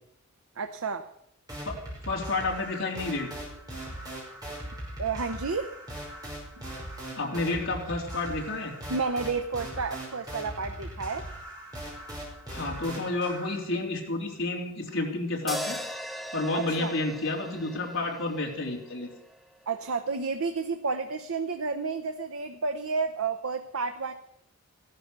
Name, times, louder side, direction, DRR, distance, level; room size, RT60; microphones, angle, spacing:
voice 1, 0.6-1.1 5.0-5.7 8.9-11.3 16.5-16.9 19.7-24.1, right 4 dB, 75° right, 7 dB, 0.8 m, -31 dB
sound 1, 1.5-13.6, right 1 dB, 15° right, 5.6 m, -40 dB
voice 2, 2.1-3.3 7.2-8.7 12.5-15.8 16.3-19.1, left 2 dB, 60° left, -1 dB, 3.3 m, -30 dB
sound 2, 15.5-19.8, equal, ahead, 0.7 m, -39 dB
15.0 x 12.0 x 6.7 m, 0.77 s
head